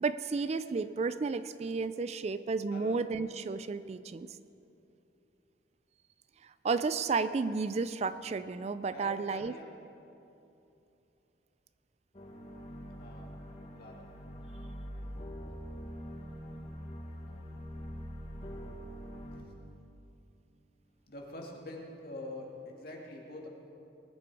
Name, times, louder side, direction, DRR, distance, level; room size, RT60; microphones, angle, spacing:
voice 1, 0.0-4.3 6.6-9.5, right 4 dB, 35° right, 13 dB, 0.3 m, -32 dB
voice 2, 8.9-9.7 12.9-13.3 13.6-14.0 14.6-14.7 17.5-17.7 21.1-23.5, left 2 dB, 55° left, -1 dB, 2.2 m, -45 dB
sound 1, 12.1-19.4, equal, 35° left, 1.5 m, -44 dB
20.0 x 9.7 x 4.8 m, 2.8 s
head